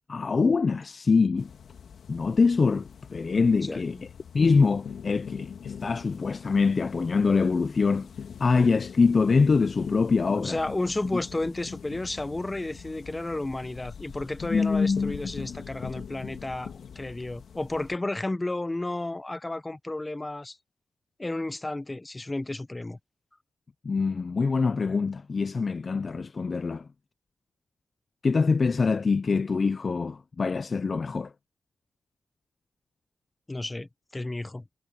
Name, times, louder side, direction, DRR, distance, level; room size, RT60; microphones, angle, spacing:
voice 1, 0.1-1.5 2.1-4.0 4.3-8.1 8.4-10.6 14.4-15.3 23.8-26.8 28.2-31.3, left 4 dB, 45° left, 0.4 m, -24 dB
sound 1, 1.4-18.0, left 7 dB, 75° left, 1.7 m, -42 dB
voice 2, 3.6-4.0 10.4-20.6 21.2-23.0 33.5-34.6, left 2 dB, 20° left, 0.9 m, -32 dB
cardioid pair, 85°, 0 cm